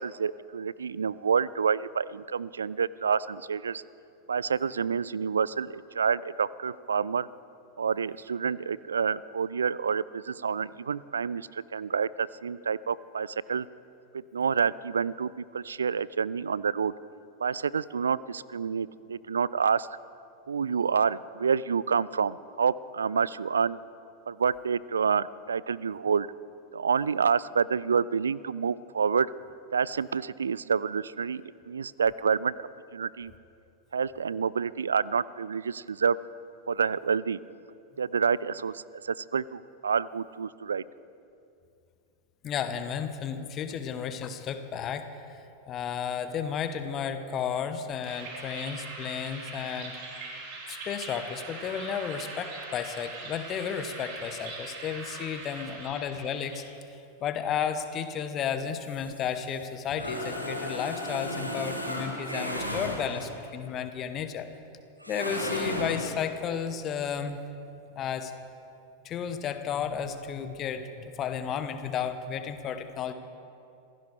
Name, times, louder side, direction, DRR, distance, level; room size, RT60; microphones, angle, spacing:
voice 1, 0.0-3.8 4.3-7.3 7.8-13.7 14.1-16.9 17.4-19.9 20.5-23.8 24.3-26.3 26.7-29.3 29.7-33.3 33.9-36.2 36.7-37.4 38.0-40.8, right 6 dB, 70° right, 21 dB, 0.3 m, -28 dB
voice 2, 42.4-45.1 45.7-50.0 50.7-64.5 65.1-67.4 68.0-68.3 69.0-73.1, left 7 dB, 30° left, 9 dB, 1.0 m, -33 dB
sound 1, 48.0-56.6, right 3 dB, 45° right, 3.9 m, -41 dB
sound 2, 58.7-63.5 65.0-66.2, equal, 90° right, 2.1 m, -35 dB
26.5 x 16.0 x 3.4 m, 2.5 s
figure-of-eight pair, 90°, 0 cm